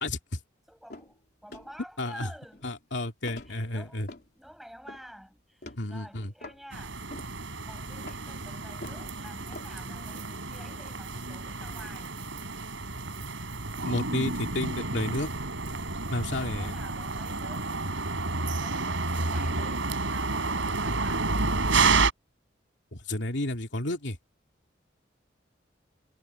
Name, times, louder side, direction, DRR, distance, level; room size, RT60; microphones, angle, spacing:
voice 1, 0.0-0.4 2.0-2.3 2.6-4.1 5.8-6.3 13.8-15.3 16.1-16.7 22.9-24.2, left 1 dB, 70° left, 2.5 m, -31 dB
voice 2, 0.7-2.7 3.2-7.0 7.6-12.1 16.3-17.8 18.6-21.4, equal, ahead, 7.8 m, -49 dB
sound 1, 0.9-1.2 1.5-1.8 2.2-2.8 3.2-4.3 4.8-5.1 5.6-5.9 6.4-6.6 7.1-7.4 7.7-9.1 9.5-9.7, left 2 dB, 55° left, 3.6 m, -45 dB
sound 2, 6.7-22.1, right 3 dB, 90° right, 4.6 m, -30 dB
head